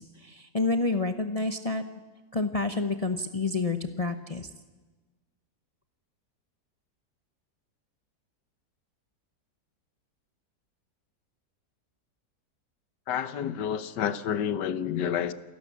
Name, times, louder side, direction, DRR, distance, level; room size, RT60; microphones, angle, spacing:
voice 1, 0.0-1.8 2.3-4.5, left 3 dB, 30° left, 0.7 m, -29 dB
voice 2, 13.1-15.3, left 9 dB, 85° left, 1.6 m, -29 dB
28.0 x 12.0 x 8.3 m
omnidirectional pair, 1.8 m